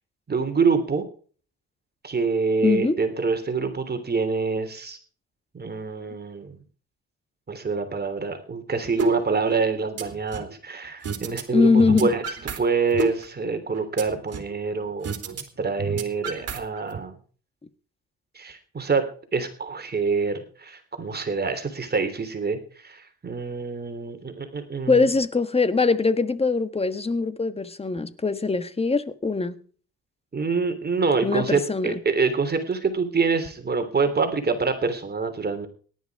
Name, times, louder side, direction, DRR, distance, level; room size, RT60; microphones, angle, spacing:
voice 1, 0.3-1.0 2.0-5.0 5.5-6.5 7.5-12.2 12.6-15.2 15.6-17.1 18.3-19.0 19.3-25.0 30.3-35.7, right 4 dB, 30° right, 3.2 m, -26 dB
voice 2, 2.6-3.0 11.5-12.1 24.9-29.5 31.2-32.0, left 4 dB, 20° left, 1.5 m, -22 dB
sound 1, 9.0-9.1 9.5-10.5 11.0-11.4 11.7-12.6 12.9-14.5 15.0-15.4 15.7-17.0, right 5 dB, 55° right, 3.3 m, -30 dB
18.0 x 11.5 x 4.8 m
cardioid pair, 90°, 30 cm